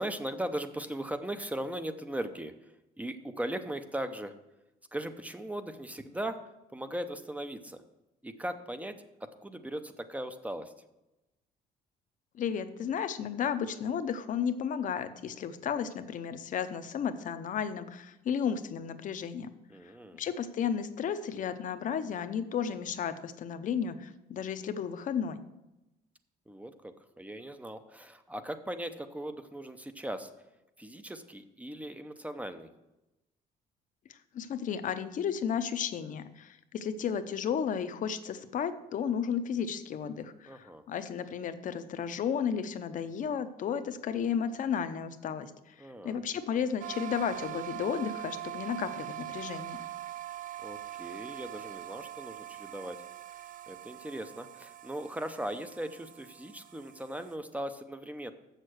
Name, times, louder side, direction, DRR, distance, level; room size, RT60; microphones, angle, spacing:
voice 1, 0.0-2.5 3.0-4.3 4.9-6.4 6.7-7.8 8.2-8.9 9.4-10.7 19.7-20.2 26.5-30.3 30.8-32.7 40.5-40.8 45.8-46.2 50.6-53.0 53.7-58.3, right 1 dB, 10° right, 9 dB, 0.6 m, -38 dB
voice 2, 12.4-19.5 20.2-25.4 34.3-45.5 46.0-49.8, left 7 dB, 50° left, 11 dB, 0.7 m, -33 dB
sound 1, 46.8-57.4, right 14 dB, 50° right, 0.6 m, -43 dB
7.4 x 6.6 x 6.3 m, 0.97 s
cardioid pair, 110°, 17 cm